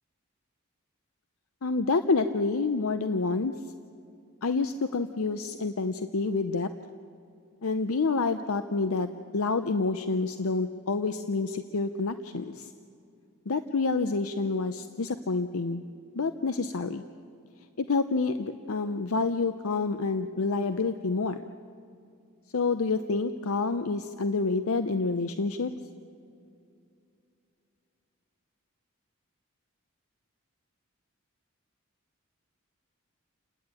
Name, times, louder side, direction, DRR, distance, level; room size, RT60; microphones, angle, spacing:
voice 1, 1.6-3.5 4.4-6.7 7.6-12.7 13.5-15.8 16.2-17.0 17.8-21.4 22.5-25.7, left 3 dB, 75° left, 10 dB, 0.6 m, -28 dB
29.5 x 10.5 x 8.9 m, 2.5 s
head